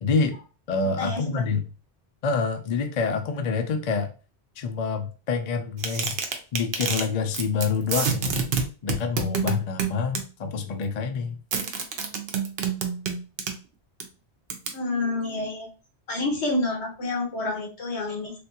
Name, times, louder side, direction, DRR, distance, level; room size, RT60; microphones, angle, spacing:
voice 1, 0.0-0.3 0.7-1.6 2.2-4.1 4.6-6.2 6.5-8.5 8.8-11.4, left 5 dB, 55° left, 5 dB, 0.4 m, -27 dB
sound 1, 5.8-7.1 7.3-7.6 7.9-10.2 11.5-13.5 14.0-14.1 14.5-14.7, right 6 dB, 60° right, 0.7 m, -27 dB
voice 2, 14.7-15.7 16.1-18.3, left 2 dB, 70° left, -1 dB, 1.4 m, -28 dB
3.4 x 2.3 x 2.8 m, 0.34 s
omnidirectional pair, 1.2 m